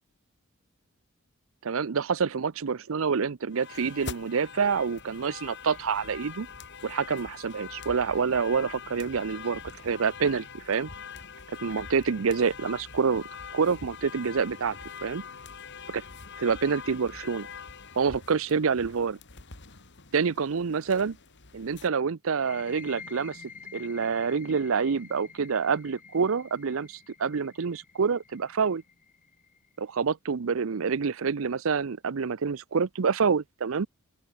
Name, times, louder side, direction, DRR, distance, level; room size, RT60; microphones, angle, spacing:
voice 1, 1.6-6.5 6.8-10.9 11.6-13.2 13.5-15.2 15.9-16.0 16.4-17.5 18.0-19.2 20.1-21.2 21.5-23.4 23.7-28.8 29.8-33.9, right 5 dB, 70° right, 0.6 m, -27 dB
sound 1, 3.5-21.9, left 5 dB, 55° left, 2.7 m, -44 dB
sound 2, 22.3-29.7, left 6 dB, 40° left, 6.9 m, -49 dB
open air
head